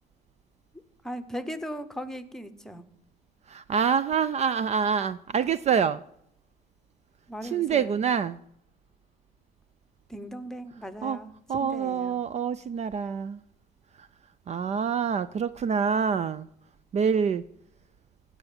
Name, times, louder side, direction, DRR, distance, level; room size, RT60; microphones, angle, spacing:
voice 1, 1.0-2.8 7.3-8.0 10.1-11.3 11.6-12.2, equal, 5° left, 1.0 m, -38 dB
voice 2, 3.5-6.0 7.5-8.4 11.0-11.2 11.5-13.4 14.0-14.1 14.5-16.5 16.9-17.4, right 7 dB, 40° right, 0.5 m, -26 dB
16.0 x 5.9 x 7.2 m
cardioid pair, 110°, 17 cm